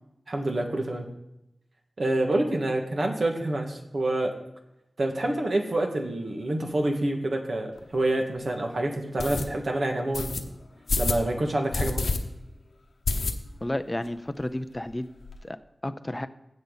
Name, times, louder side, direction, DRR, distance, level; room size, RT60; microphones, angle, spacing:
voice 1, 0.3-1.1 2.0-4.3 5.0-10.5 11.0-12.1, right 1 dB, 55° right, 2 dB, 1.7 m, -27 dB
sound 1, 7.8-7.9 8.4-8.5 9.2-9.5 10.1-10.4 10.9-11.2 11.7-12.2 12.5-12.6 13.1-13.7 14.1-14.2 14.4-14.5 14.8-15.4, left 3 dB, 75° left, 0.9 m, -28 dB
voice 2, 13.6-15.1 15.4-15.6 15.8-16.3, left 1 dB, 20° left, 10 dB, 0.5 m, -31 dB
15.5 x 5.4 x 4.0 m, 0.88 s
wide cardioid pair, 95°, 0 cm